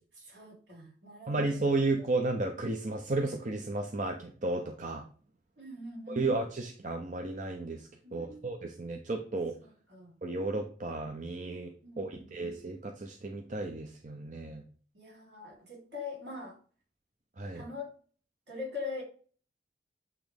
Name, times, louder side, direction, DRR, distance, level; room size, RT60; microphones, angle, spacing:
voice 1, 0.3-2.1 5.6-6.3 8.0-8.7 9.6-10.1 11.8-12.5 14.9-16.6 17.5-17.9 18.5-19.0, left 3 dB, 75° right, 0 dB, 3.6 m, -43 dB
voice 2, 1.3-5.0 6.1-7.8 8.1-9.5 10.2-11.7 12.0-14.6 17.4-17.6, right 2 dB, 45° right, 3 dB, 0.8 m, -33 dB
8.5 x 3.1 x 5.1 m, 0.41 s
head